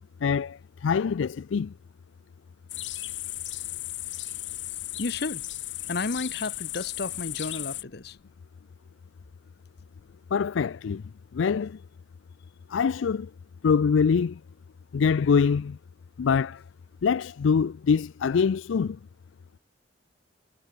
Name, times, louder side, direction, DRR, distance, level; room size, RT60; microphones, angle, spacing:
voice 1, 0.2-1.7 10.3-11.0 11.3-11.8 12.7-13.3 13.6-14.4 14.9-15.8 16.2-16.6 17.0-19.0, left 6 dB, 90° left, 0.4 m, -24 dB
sound 1, 2.7-7.8, left 15 dB, 75° left, 2.4 m, -35 dB
voice 2, 5.0-5.4 5.9-8.2, left 3 dB, 60° left, 0.9 m, -32 dB
head